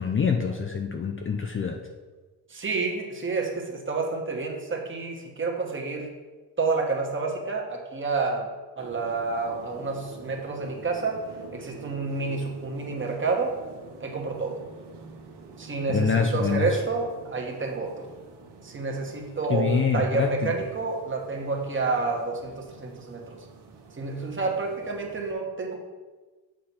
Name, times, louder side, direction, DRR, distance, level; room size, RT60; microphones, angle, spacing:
voice 1, 0.0-1.8 15.9-16.8 19.5-20.5, left 6 dB, 30° left, 3 dB, 0.5 m, -25 dB
voice 2, 2.5-6.1 6.6-8.5 8.7-11.3 11.5-13.6 14.0-14.6 15.6-18.1 18.6-23.4 23.9-25.8, right 4 dB, 30° right, 1 dB, 1.3 m, -29 dB
sound 1, 8.8-25.3, right 3 dB, 70° right, 1.2 m, -46 dB
7.6 x 5.0 x 4.4 m, 1.3 s
cardioid pair, 115°, 42 cm